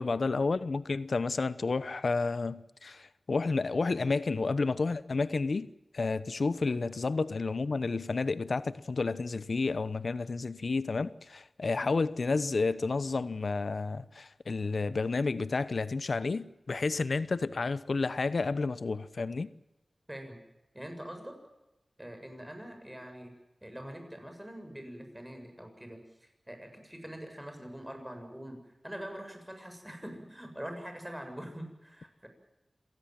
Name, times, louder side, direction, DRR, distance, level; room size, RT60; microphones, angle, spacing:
voice 1, 0.0-5.7 5.9-19.5, left 3 dB, 70° left, 1.0 m, -31 dB
voice 2, 20.7-21.4 22.0-23.3 23.6-28.6 28.8-32.3, equal, 10° right, 7.3 m, -44 dB
26.5 x 18.5 x 7.6 m
cardioid pair, 50°, 0 cm